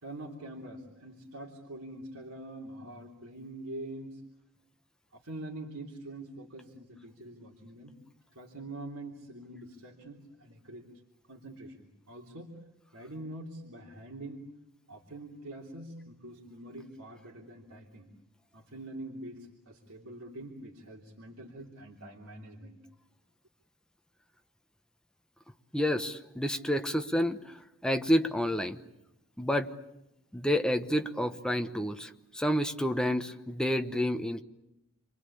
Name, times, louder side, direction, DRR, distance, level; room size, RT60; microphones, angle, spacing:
voice 1, 0.0-4.2 5.1-8.0 8.3-10.9 11.3-12.6 12.9-14.5 14.9-18.1 18.5-22.8, right 1 dB, 80° right, -2 dB, 3.2 m, -44 dB
voice 2, 25.7-28.8 29.4-29.7 30.3-34.4, equal, 5° left, 6 dB, 1.1 m, -29 dB
29.5 x 23.5 x 8.6 m, 0.86 s
head